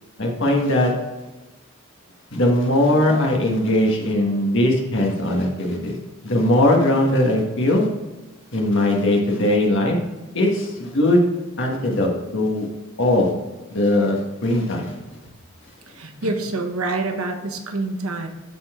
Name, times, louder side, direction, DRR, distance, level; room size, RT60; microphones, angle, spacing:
voice 1, 0.2-0.9 2.3-5.9 6.2-7.9 8.5-10.0 10.3-11.2 11.6-12.7 13.0-13.3 13.7-15.0, left 1 dB, 60° left, 0 dB, 1.6 m, -19 dB
voice 2, 15.9-18.3, right 2 dB, 90° right, 5 dB, 1.1 m, -26 dB
12.5 x 4.3 x 3.7 m, 1.1 s
head